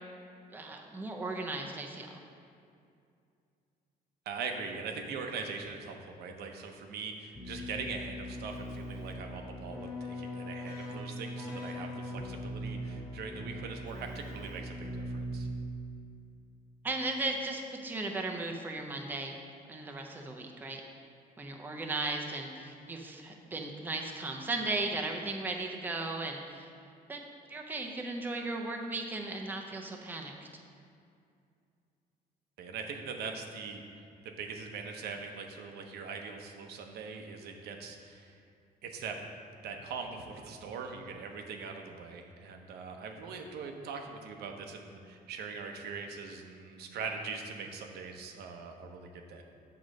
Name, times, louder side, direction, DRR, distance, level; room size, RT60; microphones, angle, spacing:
voice 1, 0.5-2.2 16.8-19.3 19.7-20.8 21.4-26.7 27.1-30.3, right 2 dB, 10° right, 1 dB, 0.5 m, -36 dB
voice 2, 4.3-15.5 32.6-33.8 34.2-38.4 38.8-39.2 39.6-49.4, right 5 dB, 85° right, 3 dB, 0.8 m, -41 dB
Keyboard (musical), 7.3-16.0, equal, 20° left, 1.5 m, -40 dB
7.2 x 3.8 x 6.3 m, 2.4 s
cardioid pair, 155°, 16 cm